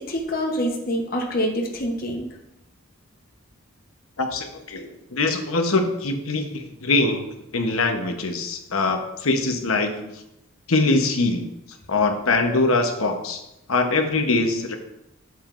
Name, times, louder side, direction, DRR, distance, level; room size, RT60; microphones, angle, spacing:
voice 1, 0.0-2.3, equal, 45° left, 0 dB, 0.9 m, -26 dB
voice 2, 4.2-7.3 7.5-10.1 10.7-11.4 11.9-13.4 13.7-14.8, left 3 dB, 85° left, 5 dB, 1.0 m, -23 dB
8.9 x 7.3 x 2.5 m, 0.88 s
head